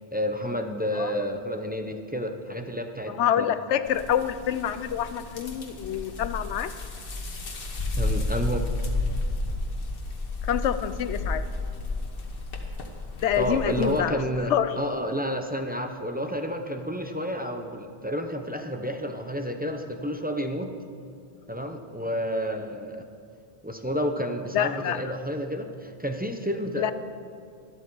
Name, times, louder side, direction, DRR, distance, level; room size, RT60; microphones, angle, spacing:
voice 1, 0.1-3.5 8.0-8.7 13.4-20.7 21.5-23.1 23.6-26.9, equal, 10° right, 4 dB, 0.6 m, -30 dB
voice 2, 3.2-6.7 10.4-11.5 13.2-14.2 14.5-14.7 24.5-25.0 26.8-26.9, left 10 dB, 90° left, 12 dB, 0.9 m, -26 dB
sound 1, 3.9-14.0, left 2 dB, 55° left, 1.4 m, -32 dB
13.0 x 12.0 x 4.7 m, 2.3 s
omnidirectional pair, 1.1 m